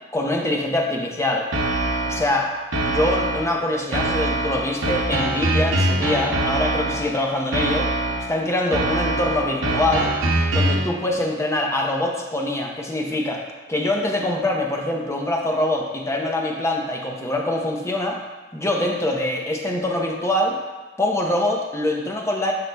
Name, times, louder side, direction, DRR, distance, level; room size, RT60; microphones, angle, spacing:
voice 1, 0.1-1.5 2.1-2.5 2.9-7.9 8.3-10.1 10.5-13.4 13.7-18.2 18.5-20.6 21.0-22.5, left 1 dB, 15° left, 0 dB, 0.7 m, -24 dB
sound 1, 1.5-2.3 2.7-3.5 3.9-7.1 7.5-8.3 8.7-10.9, right 1 dB, 85° right, 0.9 m, -23 dB
10.5 x 4.8 x 2.2 m, 1.2 s
head